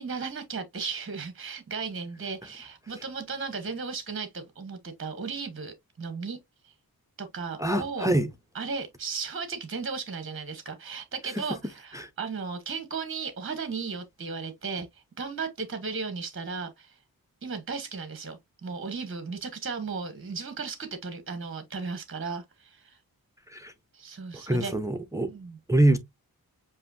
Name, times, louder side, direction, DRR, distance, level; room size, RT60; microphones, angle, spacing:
voice 1, 0.0-6.4 6.6-6.7 7.2-8.1 8.5-17.0 17.4-23.0 23.9-24.7 25.3-25.6, right 5 dB, 35° right, 1.0 m, -35 dB
voice 2, 7.6-8.3 11.9-12.1 23.5-23.7 24.5-25.3 25.7-26.0, right 1 dB, 10° right, 0.7 m, -24 dB
7.6 x 2.6 x 2.6 m
wide cardioid pair, 110°, 37 cm